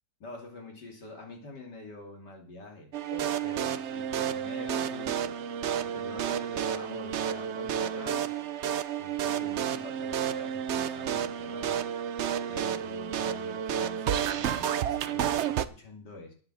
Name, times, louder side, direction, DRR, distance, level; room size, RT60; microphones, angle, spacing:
voice 1, 0.2-8.3 9.0-12.0 12.5-16.3, left 2 dB, 65° left, 2 dB, 3.3 m, -46 dB
sound 1, 2.9-15.7, right 9 dB, 85° right, 0.6 m, -31 dB
10.0 x 8.0 x 7.8 m, 0.44 s
omnidirectional pair, 2.0 m